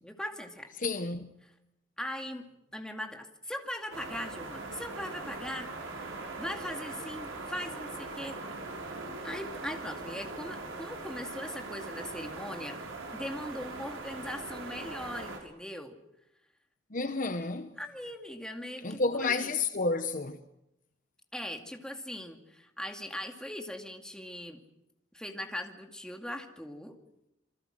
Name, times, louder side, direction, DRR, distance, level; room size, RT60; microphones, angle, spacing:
voice 1, 0.0-0.7 1.4-1.5 2.0-2.4 2.7-5.7 6.4-8.4 9.2-12.8 13.1-15.9 17.8-19.5 21.3-24.6 25.1-27.0, left 1 dB, 5° left, 2.3 m, -40 dB
voice 2, 0.8-1.4 16.9-17.7 18.8-20.4, left 3 dB, 40° left, 1.1 m, -30 dB
sound 1, 3.9-15.4, right 2 dB, 90° right, 6.1 m, -41 dB
27.5 x 23.5 x 6.4 m
head